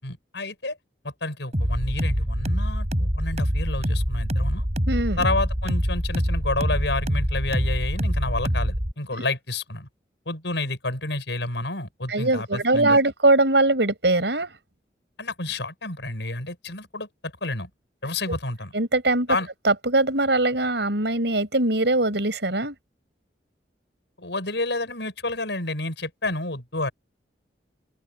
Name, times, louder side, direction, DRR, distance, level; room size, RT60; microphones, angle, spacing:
voice 1, 0.0-0.8 1.0-4.7 5.2-9.9 10.2-13.0 15.2-17.7 18.0-18.7 19.3-19.5 24.2-26.9, left 2 dB, 90° left, 6.7 m, -30 dB
sound 1, 1.5-8.9, equal, 40° right, 7.6 m, -25 dB
voice 2, 4.9-5.2 12.1-14.5 18.7-19.3 19.7-22.7, right 2 dB, 80° right, 5.4 m, -21 dB
open air
head